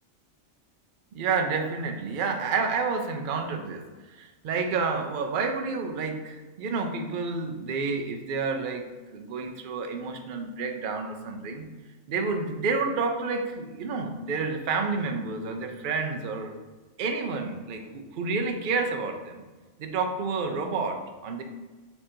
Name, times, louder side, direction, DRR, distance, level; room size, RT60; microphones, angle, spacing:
voice 1, 1.1-11.7 12.1-16.6 17.0-19.4 19.8-21.4, right 4 dB, 65° right, 4 dB, 0.5 m, -30 dB
4.5 x 2.6 x 4.2 m, 1.3 s
omnidirectional pair, 1.4 m